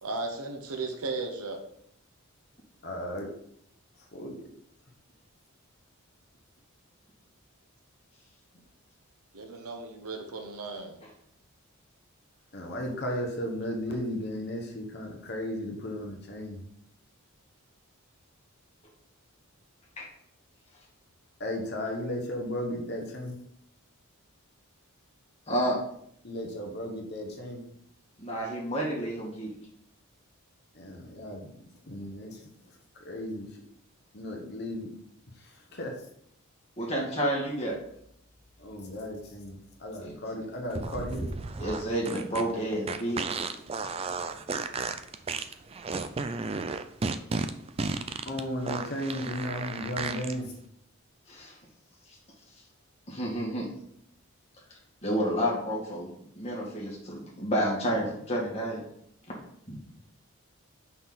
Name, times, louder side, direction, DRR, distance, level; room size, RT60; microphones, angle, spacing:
voice 1, 0.0-1.6 9.3-11.0, right 3 dB, 80° right, 4 dB, 0.9 m, -35 dB
voice 2, 2.8-3.3 4.1-4.3 12.5-16.6 21.4-23.3 26.2-27.6 30.7-31.5 31.9-32.5 32.9-33.5 34.1-34.9 35.3-35.9 36.8-36.9 38.6-41.3 48.3-50.6, left 1 dB, 45° left, 0 dB, 1.1 m, -35 dB
voice 3, 25.5-25.8 28.2-29.5 36.8-37.7 40.0-40.1 41.6-43.2 51.3-51.6 53.1-53.7 55.0-56.1 56.4-58.8 59.3-59.4 59.7-59.8, equal, 25° left, -3 dB, 2.0 m, -30 dB
sound 1, 40.7-50.3, right 4 dB, 25° right, 0.3 m, -33 dB
5.6 x 4.4 x 5.6 m, 0.71 s
head